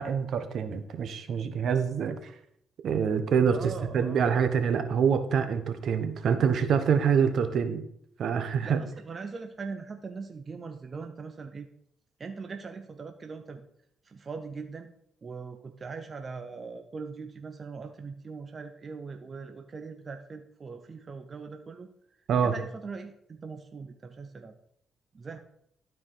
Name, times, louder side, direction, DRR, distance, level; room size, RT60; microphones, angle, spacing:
voice 1, 0.0-2.3 2.8-7.8 8.2-8.8 22.3-22.5, right 7 dB, 65° right, 9 dB, 1.0 m, -26 dB
voice 2, 3.5-4.4 8.6-11.7 12.2-13.6 14.0-14.9 15.2-21.9 22.4-24.5 25.1-25.4, right 4 dB, 35° right, 7 dB, 0.7 m, -41 dB
12.5 x 4.7 x 3.9 m, 0.70 s
cardioid pair, 90°, 0 cm